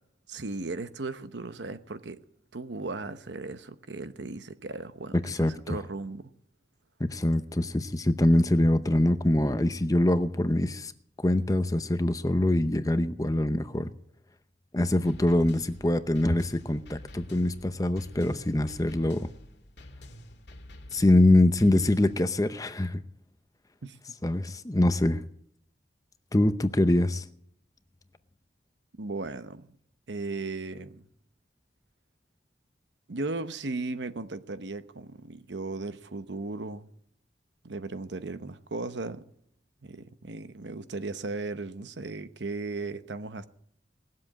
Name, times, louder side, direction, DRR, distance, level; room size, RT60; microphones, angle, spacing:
voice 1, 0.3-2.2 2.5-6.3 23.8-24.0 29.0-29.7 30.1-31.0 33.1-36.9 37.6-39.2 39.8-43.4, right 3 dB, 85° right, 0.9 m, -36 dB
voice 2, 5.1-5.5 7.0-10.9 11.2-13.9 14.7-19.3 20.9-23.0 24.2-25.2 26.3-27.2, left 1 dB, 20° left, 0.7 m, -24 dB
sound 1, 15.1-22.3, left 1 dB, 80° left, 1.9 m, -48 dB
19.0 x 7.6 x 8.6 m
head